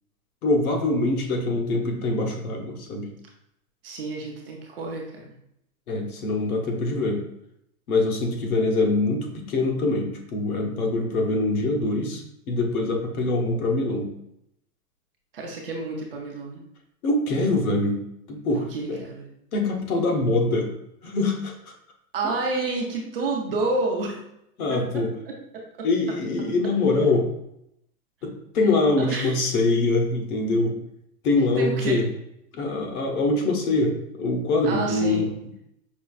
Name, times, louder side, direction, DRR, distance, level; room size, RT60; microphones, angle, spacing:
voice 1, 0.4-3.1 5.9-7.2 7.9-14.1 17.0-18.0 18.3-19.0 19.5-20.7 21.0-21.5 24.6-25.1 25.8-27.3 28.2-30.8 31.2-32.0 32.5-35.3, left 2 dB, 65° left, 2 dB, 0.9 m, -24 dB
voice 2, 3.8-5.3 15.3-16.6 18.5-19.3 22.1-24.2 24.7-25.9 29.0-29.5 31.6-32.0 34.6-35.3, right 3 dB, 40° right, -1 dB, 0.5 m, -30 dB
5.3 x 2.3 x 2.4 m, 0.79 s
hypercardioid pair, 165°, 47 cm